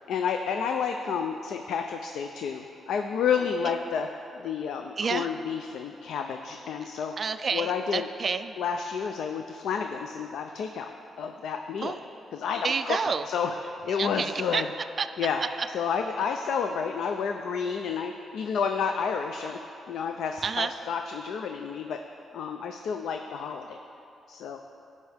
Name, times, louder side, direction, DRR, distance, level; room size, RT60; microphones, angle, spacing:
voice 1, 0.1-4.1 4.3-7.2 7.5-8.1 8.6-10.9 11.2-12.0 12.3-13.0 13.3-14.7 15.2-15.4 15.7-19.6 19.9-22.0 22.3-23.8 24.3-24.6, left 6 dB, 80° left, 5 dB, 0.4 m, -30 dB
voice 2, 5.0-5.3 7.2-8.5 11.8-12.0 12.6-13.3 14.0-14.6 15.0-15.1 20.4-20.7, right 5 dB, 35° right, 10 dB, 0.3 m, -29 dB
16.0 x 5.4 x 3.4 m, 2.7 s
wide cardioid pair, 160°, 0 cm